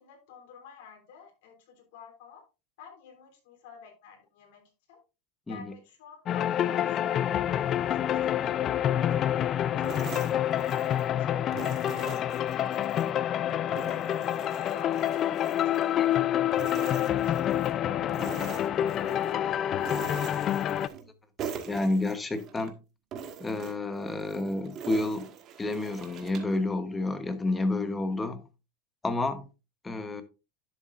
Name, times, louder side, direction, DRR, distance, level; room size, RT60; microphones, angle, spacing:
voice 1, 0.0-2.5 2.8-5.0 5.5-9.3 9.7-12.2 12.5-16.7 17.2-20.3, left 7 dB, 75° left, 3.4 m, -51 dB
sound 1, 6.3-20.9, left 11 dB, 35° left, 0.4 m, -27 dB
sound 2, 9.8-11.1 11.5-13.1 13.5-16.2 16.5-17.8 18.1-19.4 19.8-21.1 21.4-22.7 23.1-26.6, right 7 dB, 40° right, 1.4 m, -43 dB
voice 2, 21.7-22.7 23.4-25.3 25.6-28.4 29.0-29.5 29.8-30.2, left 2 dB, 10° left, 1.0 m, -30 dB
11.0 x 7.1 x 2.5 m
supercardioid pair, 140°, 0 cm